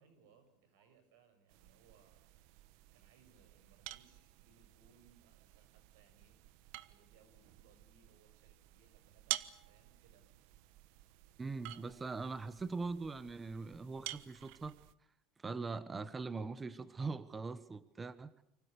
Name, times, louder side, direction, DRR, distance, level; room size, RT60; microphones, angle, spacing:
voice 1, 0.0-2.4 2.9-6.4 6.9-10.3 11.6-12.2, right 5 dB, 85° right, 9 dB, 7.2 m, -68 dB
sound 1, 1.5-14.9, right 17 dB, 70° right, 1.1 m, -49 dB
voice 2, 11.4-14.8 15.4-18.3, right 4 dB, 15° right, 14 dB, 1.1 m, -41 dB
29.5 x 25.0 x 6.8 m, 0.76 s
supercardioid pair, 140°, 0 cm